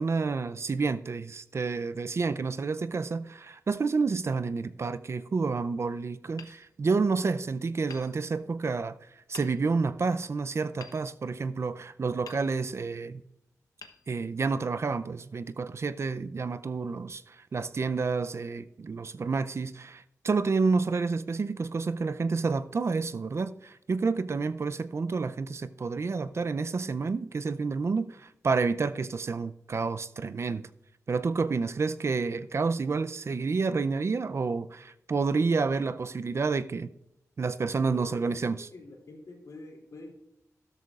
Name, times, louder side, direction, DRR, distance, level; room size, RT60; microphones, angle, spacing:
voice 1, 0.0-9.0 9.3-13.2 14.1-30.7 31.1-36.9 37.4-38.7, right 4 dB, 50° right, 0.4 m, -29 dB
Hammer, 6.4-7.4 7.9-8.8 9.3-9.9 10.8-11.8 12.2-13.0 13.8-14.7, left 5 dB, 90° left, 0.9 m, -51 dB
voice 2, 37.9-40.1, left 2 dB, 65° left, 2.8 m, -46 dB
13.0 x 12.5 x 2.4 m
wide cardioid pair, 80°, 6 cm